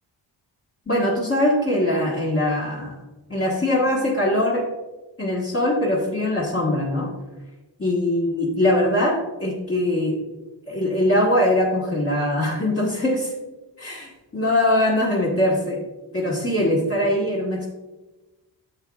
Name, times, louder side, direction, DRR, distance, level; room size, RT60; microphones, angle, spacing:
voice 1, 0.9-2.9 3.3-4.6 5.2-7.1 7.8-10.1 10.7-13.3 13.8-15.8 16.1-17.7, left 1 dB, 30° left, -5 dB, 1.4 m, -22 dB
8.9 x 7.4 x 2.3 m, 1.1 s
wide cardioid pair, 95°, 44 cm